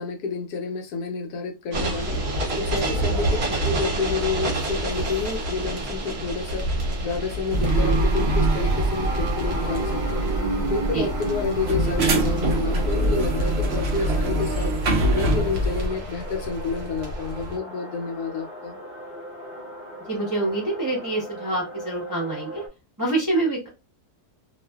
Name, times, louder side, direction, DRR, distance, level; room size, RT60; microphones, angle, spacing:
voice 1, 0.0-2.2 2.6-10.3 10.7-14.7 15.1-18.8, left 4 dB, 75° left, 4 dB, 1.0 m, -29 dB
sound 1, 1.7-17.6, right 1 dB, 50° right, 0.8 m, -29 dB
sound 2, 7.5-15.9, right 1 dB, 85° right, 0.5 m, -24 dB
prayes in Fm, 9.1-22.7, equal, 50° left, 0.7 m, -39 dB
voice 2, 20.1-22.6 23.0-23.7, right 2 dB, 20° right, -3 dB, 0.5 m, -26 dB
2.5 x 2.4 x 2.3 m, 0.25 s
omnidirectional pair, 1.8 m